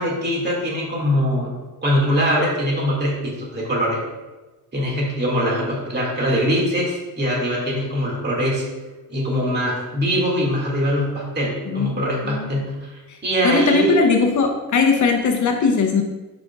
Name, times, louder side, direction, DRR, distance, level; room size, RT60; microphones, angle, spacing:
voice 1, 0.0-1.5 1.8-4.0 4.7-8.6 9.1-14.0, equal, 25° right, -4 dB, 2.1 m, -22 dB
voice 2, 11.7-12.5 13.1-13.2 13.4-16.0, left 4 dB, 50° left, 3 dB, 0.7 m, -19 dB
11.0 x 5.1 x 2.4 m, 1.2 s
cardioid pair, 145°, 38 cm